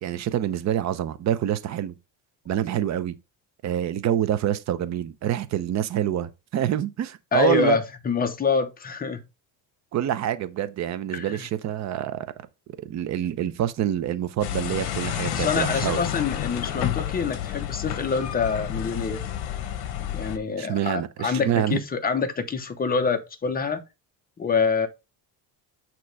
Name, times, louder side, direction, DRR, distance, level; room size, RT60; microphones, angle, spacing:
voice 1, 0.0-1.9 2.5-3.2 3.6-7.8 9.9-12.3 12.8-16.0 20.6-21.8, right 10 dB, 40° right, 0.6 m, -26 dB
voice 2, 7.3-9.2 11.1-11.5 15.3-19.3 20.1-23.8 24.4-24.9, left 5 dB, 20° left, 0.8 m, -26 dB
sound 1, 14.4-20.4, left 11 dB, 60° left, 1.2 m, -30 dB
8.5 x 3.1 x 4.6 m
cardioid pair, 155°, 43 cm